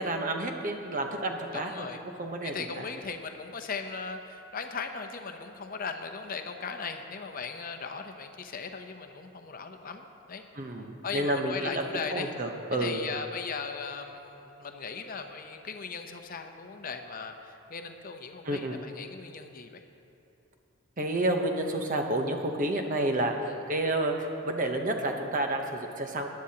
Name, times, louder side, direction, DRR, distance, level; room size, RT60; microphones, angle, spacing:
voice 1, 0.0-1.9 2.2-2.8 10.6-11.8 12.1-13.0 18.4-18.8 21.0-23.3 23.7-24.1 24.4-26.3, right 1 dB, 40° right, 4 dB, 0.9 m, -30 dB
voice 2, 1.5-2.0 2.4-10.7 11.0-12.3 12.8-19.8 23.5-23.6, left 5 dB, 45° left, 6 dB, 0.7 m, -38 dB
17.0 x 10.5 x 2.9 m, 2.7 s
head